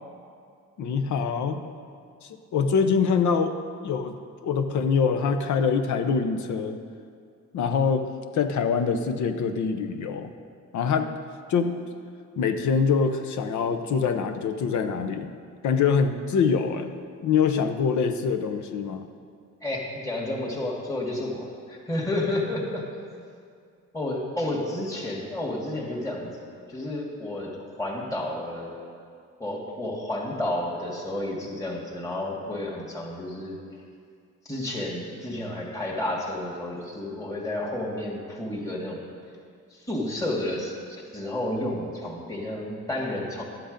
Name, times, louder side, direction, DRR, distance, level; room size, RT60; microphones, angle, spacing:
voice 1, 0.8-1.6 2.2-3.5 3.8-4.2 4.4-6.8 7.5-8.1 8.3-10.3 10.7-11.1 11.5-11.8 12.4-15.3 15.6-16.9 17.2-19.1, left 6 dB, 70° left, 7 dB, 0.8 m, -24 dB
voice 2, 19.6-22.8 23.9-28.8 29.4-33.6 34.5-39.0 39.7-43.4, left 1 dB, 10° left, -3 dB, 1.9 m, -31 dB
11.5 x 7.9 x 5.2 m, 2.3 s
cardioid pair, 90°, 30 cm